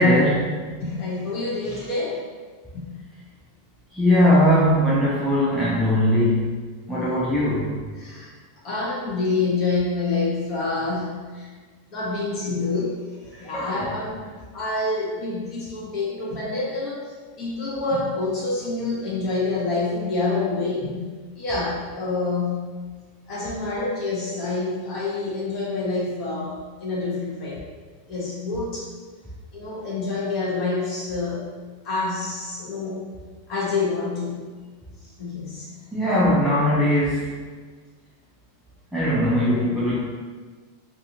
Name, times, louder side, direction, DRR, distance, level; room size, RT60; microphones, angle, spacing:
voice 1, 0.0-0.5 3.9-6.6 6.9-7.7 13.5-13.9 35.9-37.3 38.9-40.0, left 1 dB, ahead, -10 dB, 0.3 m, -20 dB
voice 2, 0.6-2.2 2.7-3.0 7.9-8.3 8.6-11.5 11.9-21.0 21.3-22.7 23.3-27.6 28.1-28.9 29.5-31.5 31.8-33.0 33.5-34.4 35.2-35.7, left 3 dB, 25° left, -5 dB, 0.7 m, -27 dB
2.7 x 2.4 x 2.6 m, 1.4 s
supercardioid pair, 180°, 0 cm